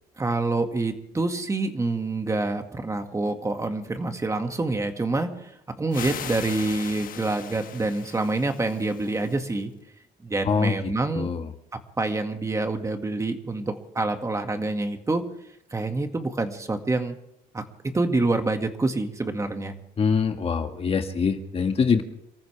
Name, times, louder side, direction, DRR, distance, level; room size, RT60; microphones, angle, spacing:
voice 1, 0.2-5.5 5.8-9.7 10.2-11.3 12.0-15.3 15.7-17.2 17.5-17.6 17.9-19.8, right 2 dB, 20° right, 5 dB, 1.9 m, -27 dB
sound 1, 5.9-9.6, left 9 dB, 55° left, 1.3 m, -39 dB
voice 2, 10.4-10.8 11.1-11.5 20.0-22.0, left 5 dB, 35° left, 6 dB, 1.6 m, -24 dB
28.0 x 14.5 x 3.4 m, 0.78 s
cardioid pair, 110°, 17 cm